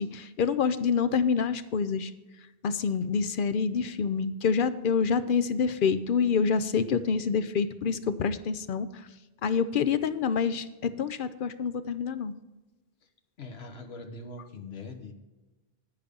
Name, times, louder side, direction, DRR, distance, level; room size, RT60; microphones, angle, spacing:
voice 1, 0.0-2.1 2.6-9.1 9.4-12.3, left 6 dB, 60° left, 12 dB, 0.7 m, -27 dB
voice 2, 13.4-15.1, left 3 dB, 90° left, 5 dB, 1.3 m, -42 dB
10.5 x 5.1 x 6.7 m, 1.1 s
omnidirectional pair, 1.0 m